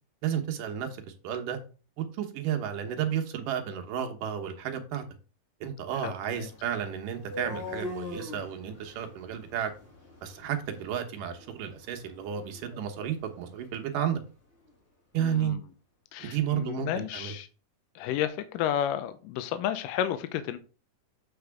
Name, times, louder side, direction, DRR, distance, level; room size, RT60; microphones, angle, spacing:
voice 1, 0.2-0.9 1.2-1.6 2.0-5.0 5.6-9.7 10.2-14.2 15.1-15.6 16.2-17.4, right 9 dB, 75° right, 2.6 m, -32 dB
voice 2, 5.9-6.5 15.2-15.6 16.1-17.5 18.0-20.6, left 10 dB, 85° left, 2.2 m, -32 dB
sound 1, 6.3-14.2, left 1 dB, 45° left, 0.8 m, -44 dB
7.9 x 5.2 x 3.5 m
omnidirectional pair, 3.9 m